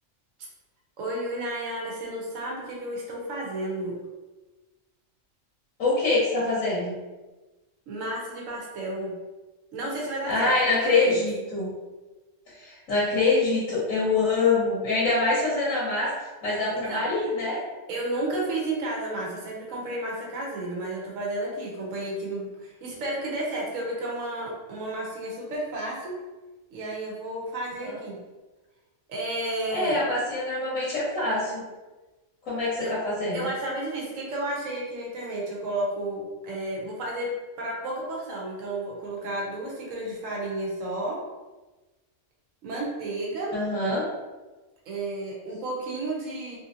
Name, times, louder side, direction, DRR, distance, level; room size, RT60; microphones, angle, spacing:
voice 1, 1.0-4.0 7.9-9.1 9.7-11.2 16.7-17.0 17.9-26.2 26.7-28.2 29.1-30.0 32.8-32.9 33.3-37.3 37.6-41.2 42.6-43.6 44.9-46.6, right 1 dB, 75° right, -3 dB, 1.2 m, -32 dB
voice 2, 5.8-7.0 10.3-11.7 12.5-16.1 16.4-17.6 27.8-28.0 29.7-31.6 32.4-33.5 43.5-44.0, left 3 dB, 80° left, -7 dB, 1.4 m, -25 dB
3.3 x 2.8 x 2.5 m, 1.2 s
omnidirectional pair, 1.4 m